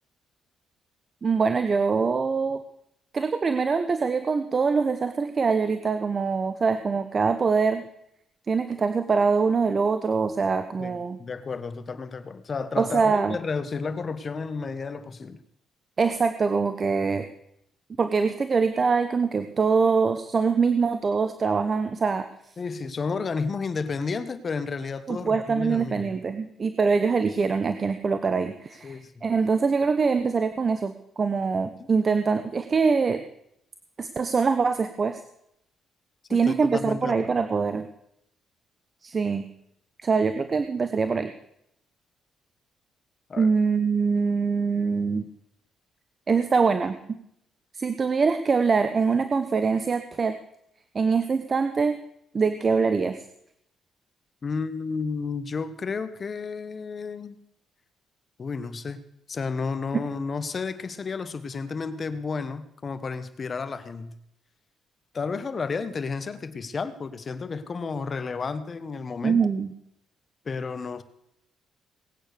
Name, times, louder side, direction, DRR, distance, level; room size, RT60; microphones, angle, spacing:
voice 1, 1.2-2.6 3.1-7.8 8.5-11.2 12.8-13.4 16.0-17.3 18.0-22.3 25.1-33.2 34.0-35.2 36.3-37.9 39.0-39.5 40.0-41.3 43.4-45.3 46.3-47.0 47.7-50.4 50.9-52.0 52.3-53.2 59.9-60.0 69.2-69.7, right 5 dB, 40° right, 10 dB, 1.0 m, -24 dB
voice 2, 10.8-15.4 22.6-26.1 28.8-29.2 36.3-37.4 43.3-43.5 54.4-57.4 58.4-59.0 59.3-64.2 65.1-69.4 70.4-71.0, left 4 dB, 40° left, 12 dB, 1.3 m, -32 dB
19.0 x 8.8 x 6.7 m, 0.78 s
cardioid pair, 90°, 0 cm